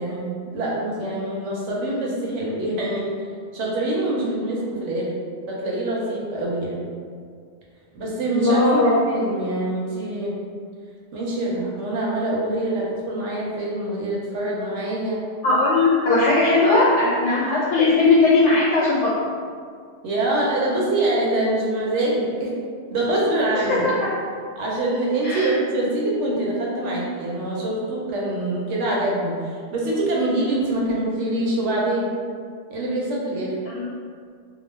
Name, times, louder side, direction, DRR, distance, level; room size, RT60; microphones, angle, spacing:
voice 1, 0.0-3.1 3.5-5.1 5.5-6.8 7.9-10.3 11.1-15.2 20.0-22.5 22.9-23.8 24.6-29.4 29.7-32.1 32.7-33.6, right 1 dB, 90° right, -4 dB, 1.0 m, -24 dB
voice 2, 8.3-8.9 15.4-19.1 23.7-23.9 25.2-25.5 33.6-33.9, left 3 dB, 80° left, -8 dB, 1.0 m, -18 dB
2.3 x 2.2 x 3.1 m, 2.1 s
omnidirectional pair, 1.2 m